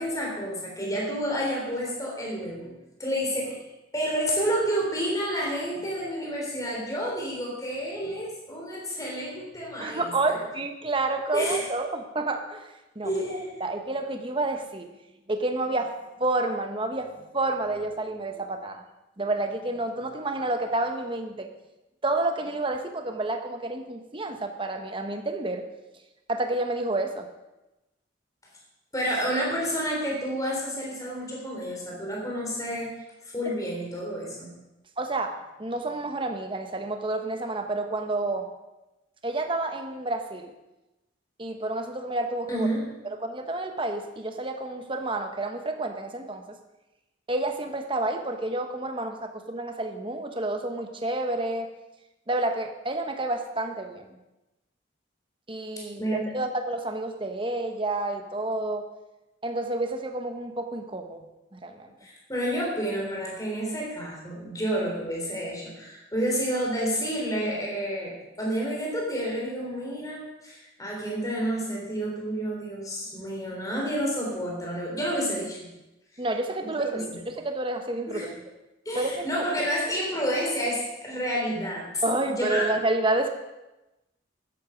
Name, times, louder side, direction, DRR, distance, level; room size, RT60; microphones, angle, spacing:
voice 1, 0.0-2.7 3.0-3.6 3.9-10.1 11.3-11.6 13.0-13.5 28.9-32.9 33.2-34.5 42.5-42.8 56.0-56.2 62.0-75.6 76.9-77.2 78.1-78.3 78.9-82.0 82.4-82.6, equal, 15° left, -2 dB, 3.7 m, -29 dB
voice 2, 9.8-14.9 15.3-18.8 19.2-21.5 22.0-25.7 26.3-27.3 33.5-33.6 35.0-38.5 39.2-40.5 41.4-42.7 43.0-46.6 47.3-51.7 52.3-54.1 55.5-58.9 59.4-61.9 76.2-78.4 78.9-79.4 82.0-83.3, right 2 dB, 25° right, 6 dB, 1.0 m, -29 dB
13.5 x 11.0 x 5.1 m, 0.99 s
head